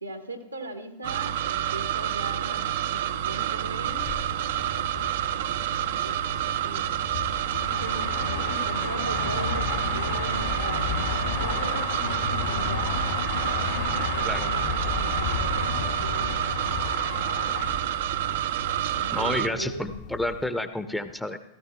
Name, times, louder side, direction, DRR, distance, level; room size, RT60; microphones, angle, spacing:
voice 1, 0.0-4.1 4.3-6.8 7.8-13.0 13.3-17.1 17.4-18.1 19.0-20.0, right 2 dB, 85° right, 5 dB, 1.1 m, -40 dB
sound 1, 1.0-19.5, right 11 dB, 55° right, 0.4 m, -28 dB
sound 2, 3.9-20.4, left 6 dB, 55° left, 1.9 m, -33 dB
voice 2, 19.1-21.4, left 1 dB, 5° left, 10 dB, 0.6 m, -30 dB
16.5 x 14.0 x 2.2 m, 0.99 s
figure-of-eight pair, 90°, 0 cm